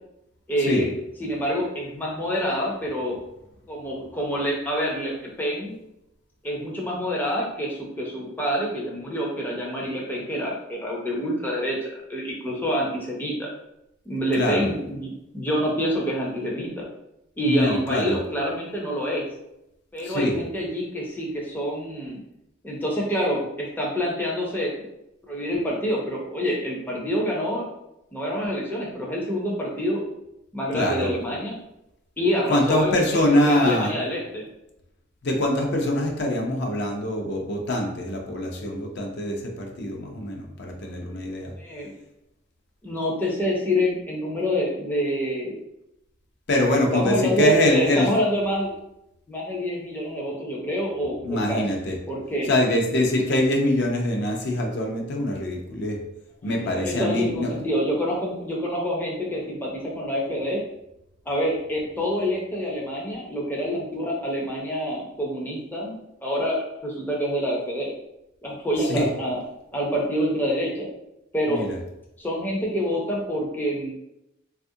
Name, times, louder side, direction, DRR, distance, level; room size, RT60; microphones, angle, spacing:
voice 1, 0.5-0.9 1.2-3.2 3.7-5.8 6.4-13.5 14.1-16.9 17.4-19.2 19.9-22.2 22.6-24.8 25.3-27.7 28.1-30.0 30.5-31.6 32.2-34.5 41.6-41.9 42.8-45.5 46.9-48.7 49.3-51.8 52.1-52.5 56.6-60.6 61.3-67.9 68.4-69.4 69.7-70.9 71.3-71.7 72.2-73.9, equal, 10° left, -3 dB, 0.5 m, -27 dB
voice 2, 14.3-14.7 17.5-18.2 20.0-20.4 30.7-31.1 32.5-33.9 35.2-41.5 46.5-48.1 51.2-52.0 52.5-56.0 56.4-57.6 68.8-69.1 71.5-71.8, left 1 dB, 55° left, 1 dB, 0.5 m, -24 dB
3.3 x 2.4 x 2.6 m, 0.86 s
head